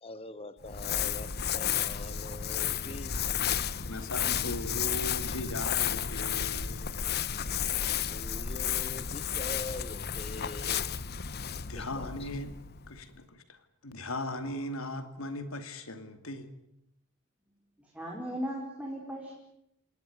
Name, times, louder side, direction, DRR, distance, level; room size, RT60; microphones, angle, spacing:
voice 1, 0.0-3.3 7.9-10.8 11.7-12.3, left 2 dB, 30° left, 13 dB, 1.3 m, -44 dB
Crumpling crinkling, 0.6-13.1, left 8 dB, 50° left, 1.0 m, -32 dB
voice 2, 3.9-7.0 11.7-12.5 12.9-13.6 13.8-16.5, left 1 dB, 75° left, 9 dB, 2.7 m, -38 dB
voice 3, 17.8-19.3, equal, 5° right, -2 dB, 4.9 m, -37 dB
28.0 x 19.5 x 9.6 m, 0.79 s
head